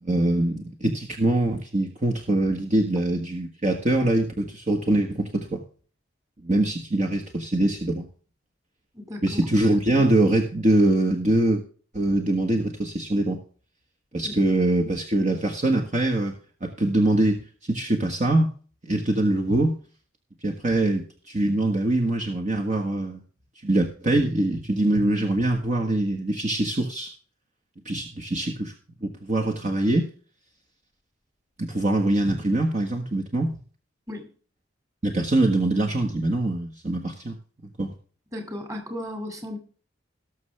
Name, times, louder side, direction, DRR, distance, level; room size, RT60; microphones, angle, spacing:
voice 1, 0.0-5.6 6.4-8.0 9.2-11.6 11.9-13.4 14.1-17.4 17.7-18.5 18.9-19.8 20.4-23.2 23.6-27.1 27.8-28.7 29.0-30.1 31.6-33.6 35.0-37.3 37.8-37.9, right 1 dB, 40° right, 1 dB, 1.5 m, -23 dB
voice 2, 8.9-9.4 14.2-14.3 34.1-34.3 38.3-39.6, left 1 dB, 15° right, 6 dB, 2.4 m, -35 dB
18.5 x 6.5 x 3.4 m, 0.40 s
head